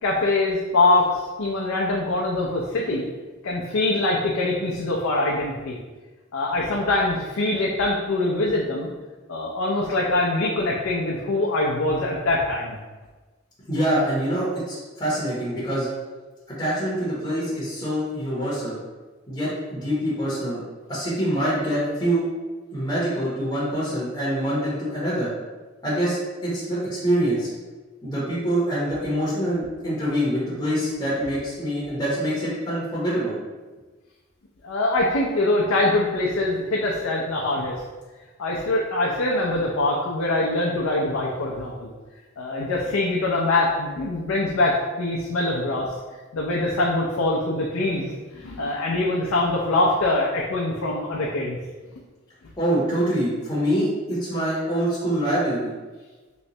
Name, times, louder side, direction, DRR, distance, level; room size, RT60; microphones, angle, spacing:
voice 1, 0.0-3.1 3.4-5.8 6.3-8.9 9.3-12.8 34.6-37.8 38.4-41.9 42.4-45.9 46.3-51.6, left 2 dB, 85° left, -3 dB, 0.5 m, -23 dB
voice 2, 13.7-15.9 16.6-18.8 19.3-20.6 20.9-22.2 22.7-25.3 25.8-26.2 26.4-26.8 27.0-27.5 28.0-33.3 52.6-55.7, right 1 dB, 20° left, -8 dB, 0.7 m, -25 dB
3.1 x 3.0 x 2.7 m, 1.3 s
head